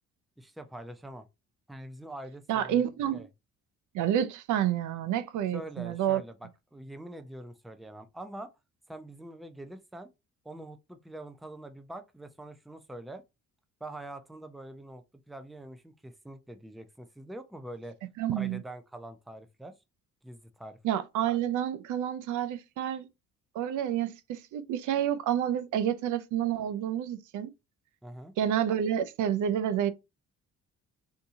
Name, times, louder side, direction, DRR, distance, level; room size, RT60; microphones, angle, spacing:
voice 1, 0.4-1.3 1.7-2.9 3.1-3.3 5.5-8.5 8.9-10.1 10.4-13.2 13.8-18.0 18.3-19.7 20.2-20.8 28.0-28.3, right 1 dB, ahead, 0.4 m, -44 dB
voice 2, 2.5-3.3 3.9-6.2 18.2-18.6 20.8-23.1 23.5-27.5 28.4-29.9, right 10 dB, 80° right, 0.5 m, -29 dB
3.6 x 2.8 x 2.7 m
cardioid pair, 90°, 30 cm